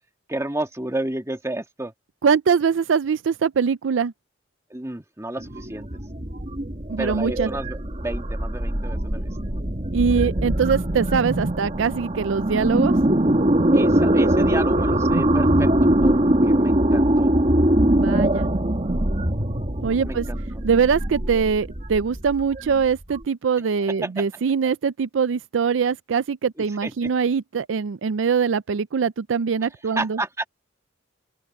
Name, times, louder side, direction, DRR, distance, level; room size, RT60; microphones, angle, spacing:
voice 1, 0.3-1.9 4.7-5.9 7.0-9.3 13.7-15.7 16.0-17.3 20.0-20.4 23.6-24.3 26.8-27.1 29.9-30.5, right 1 dB, 15° right, 1.6 m, -31 dB
voice 2, 2.2-4.1 6.9-7.5 9.9-13.0 17.9-18.5 19.8-20.3 20.6-30.2, right 6 dB, 75° right, 0.4 m, -22 dB
sound 1, 5.4-23.2, right 1 dB, 35° right, 1.8 m, -22 dB
open air
head